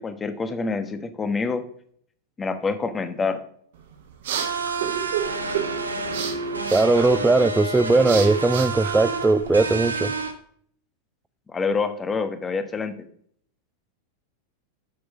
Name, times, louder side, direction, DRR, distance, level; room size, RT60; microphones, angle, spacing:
voice 1, 0.0-1.6 2.4-3.4 11.5-13.1, left 4 dB, 15° left, 9 dB, 1.1 m, -27 dB
sound 1, 3.7-9.7, right 9 dB, 55° right, 1.5 m, -32 dB
sound 2, 4.4-10.3, right 3 dB, 80° right, 1.3 m, -29 dB
voice 2, 6.7-10.1, right 3 dB, 10° right, 11 dB, 0.4 m, -19 dB
7.6 x 6.5 x 6.1 m, 0.62 s
figure-of-eight pair, 90°, 0 cm